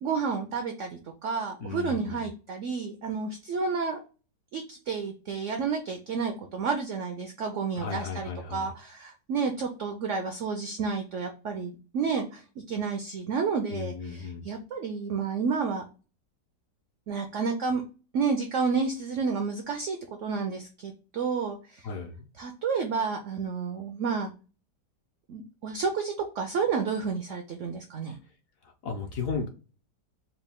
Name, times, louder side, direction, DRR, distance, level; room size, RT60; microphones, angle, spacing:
voice 1, 0.0-4.0 4.5-15.8 17.1-17.8 18.1-21.9 22.4-24.3 25.3-28.2, right 5 dB, 75° right, 5 dB, 0.7 m, -30 dB
voice 2, 1.6-2.3 7.8-8.7 13.7-14.4 21.8-22.2 28.8-29.5, left 5 dB, 65° left, 3 dB, 0.9 m, -34 dB
4.4 x 2.3 x 3.5 m, 0.34 s
omnidirectional pair, 1.9 m